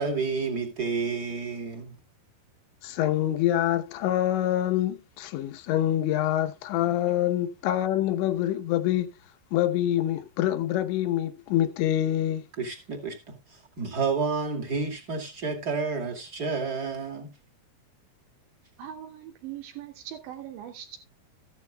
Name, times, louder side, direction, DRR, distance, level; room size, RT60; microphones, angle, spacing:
voice 1, 0.0-2.0 12.6-17.3, right 4 dB, 35° right, 1.7 m, -30 dB
voice 2, 2.8-9.1 9.5-12.4, left 12 dB, 85° left, 3.2 m, -26 dB
voice 3, 18.8-21.0, right 10 dB, 85° right, 4.4 m, -40 dB
14.0 x 12.0 x 2.2 m
omnidirectional pair, 5.1 m